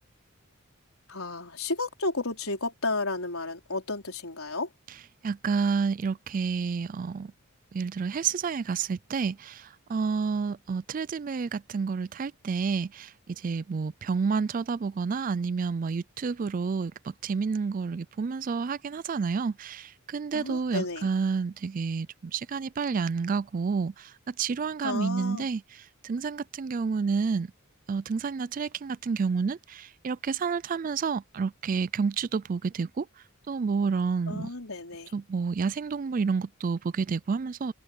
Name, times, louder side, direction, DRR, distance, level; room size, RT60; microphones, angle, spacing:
voice 1, 1.1-4.7 20.3-21.1 24.8-25.5 34.3-35.1, left 2 dB, 75° left, 4.5 m, -32 dB
voice 2, 5.2-7.3 7.7-13.1 13.4-16.9 17.2-22.1 22.3-24.1 24.4-25.6 26.0-27.5 27.9-33.1 33.5-34.5 35.1-37.7, right 5 dB, 40° right, 0.3 m, -29 dB
head